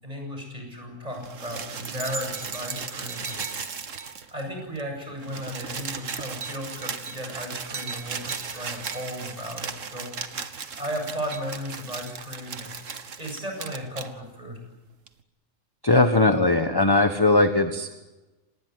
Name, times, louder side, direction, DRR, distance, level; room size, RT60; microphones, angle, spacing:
voice 1, 0.0-3.4 3.7-12.7 13.2-14.6, equal, 25° right, 2 dB, 8.2 m, -35 dB
sound 1, 1.1-4.5 4.8-4.9 5.1-14.1 15.1-15.2, right 5 dB, 65° right, 1.8 m, -36 dB
voice 2, 15.8-18.0, left 2 dB, 15° left, 8 dB, 1.3 m, -20 dB
26.5 x 20.0 x 9.7 m, 1.1 s
omnidirectional pair, 1.4 m